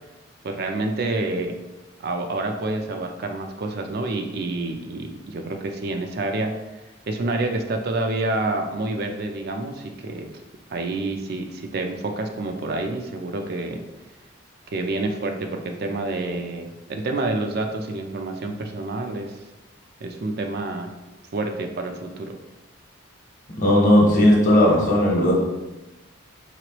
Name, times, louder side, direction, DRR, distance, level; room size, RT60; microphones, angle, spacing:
voice 1, 0.4-1.5 2.0-6.5 7.1-10.3 10.7-13.8 14.7-19.4 20.0-20.9 21.3-22.3, right 2 dB, 50° right, 4 dB, 0.4 m, -28 dB
voice 2, 23.6-25.3, left 1 dB, 40° left, -3 dB, 1.2 m, -16 dB
5.7 x 3.0 x 3.0 m, 1.0 s
head